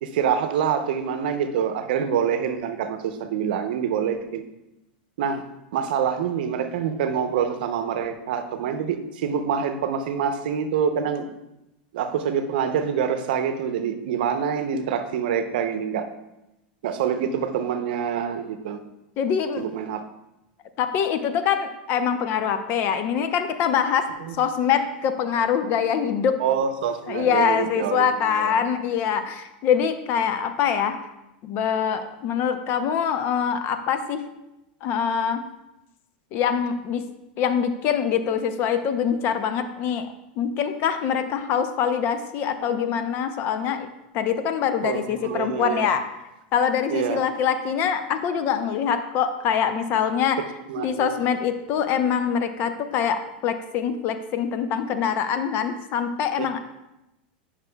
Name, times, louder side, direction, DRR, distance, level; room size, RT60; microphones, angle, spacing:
voice 1, 0.0-4.4 5.2-5.4 5.7-11.3 11.9-16.1 16.8-18.8 19.6-20.0 24.2-24.3 26.4-28.1 28.4-28.6 44.8-45.9 46.9-47.2 50.7-51.2, right 7 dB, 75° right, 8 dB, 0.7 m, -26 dB
voice 2, 19.2-19.6 20.8-26.4 27.1-31.0 31.4-34.2 34.8-35.4 36.3-37.0 37.4-40.1 40.4-43.9 44.1-46.0 46.5-50.4 50.8-56.6, left 7 dB, 45° left, 9 dB, 0.6 m, -24 dB
9.5 x 5.8 x 2.3 m, 0.92 s
supercardioid pair, 125°, 5 cm